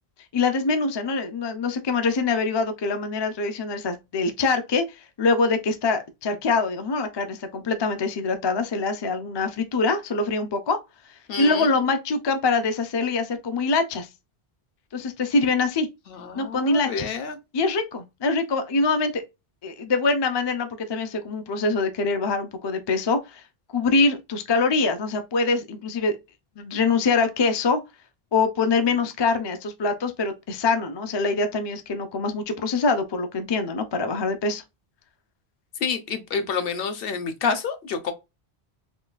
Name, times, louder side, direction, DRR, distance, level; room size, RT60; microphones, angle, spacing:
voice 1, 0.3-4.8 5.2-10.8 11.4-14.1 14.9-15.9 16.3-17.1 17.5-19.2 19.6-23.4 23.7-26.2 26.6-27.8 28.3-34.6, left 3 dB, 45° left, 0.3 m, -24 dB
voice 2, 11.3-11.7 16.1-17.4 35.8-38.1, left 5 dB, 65° left, 0.8 m, -28 dB
3.7 x 2.3 x 2.4 m
omnidirectional pair, 1.1 m